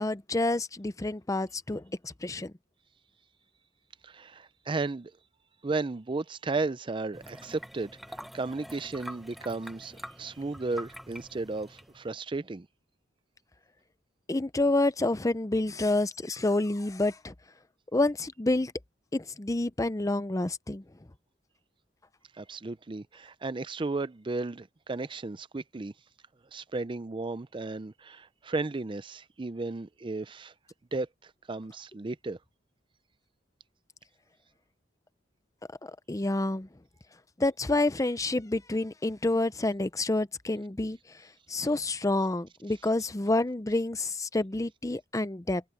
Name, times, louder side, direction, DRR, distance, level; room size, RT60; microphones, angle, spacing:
voice 1, 0.0-2.5 14.3-17.3 17.9-18.7 19.1-20.8 35.8-36.7 37.4-41.0 41.5-45.6, left 2 dB, 20° left, 0.6 m, -28 dB
voice 2, 4.0-5.1 5.6-7.9 8.3-12.7 22.3-25.9 26.5-30.5 30.9-32.4, right 3 dB, 25° right, 0.5 m, -34 dB
sound 1, 7.1-12.2, equal, ahead, 1.1 m, -46 dB
head